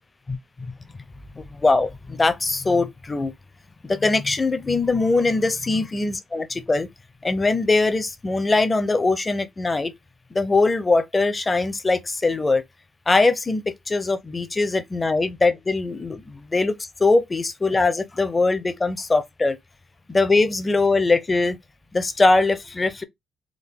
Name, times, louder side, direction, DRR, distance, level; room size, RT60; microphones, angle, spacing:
voice 1, 1.3-3.3 3.8-6.9 7.2-9.9 10.3-12.6 13.1-19.6 20.1-21.6 21.9-23.0, left 3 dB, 25° left, 0.5 m, -21 dB
3.6 x 2.1 x 3.6 m
cardioid pair, 90°, 0 cm